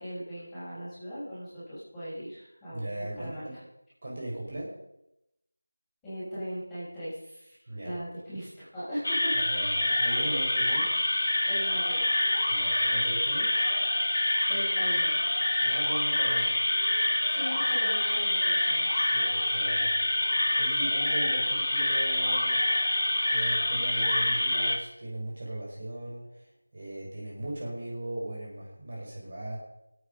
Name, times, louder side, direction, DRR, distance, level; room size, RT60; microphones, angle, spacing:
voice 1, 0.0-3.6 6.0-9.9 11.4-12.1 14.5-15.2 17.3-19.1, equal, 5° left, -16 dB, 6.9 m, -39 dB
voice 2, 2.7-3.5 4.0-4.7 7.7-8.0 9.3-10.9 12.5-13.5 15.6-16.5 19.1-20.3 20.6-22.6 23.3-26.5 26.7-29.6, right 1 dB, 40° right, -4 dB, 5.6 m, -38 dB
sound 1, 9.0-24.8, left 1 dB, 65° left, 2.8 m, -26 dB
21.5 x 9.2 x 5.6 m, 0.85 s
figure-of-eight pair, 175°, 0 cm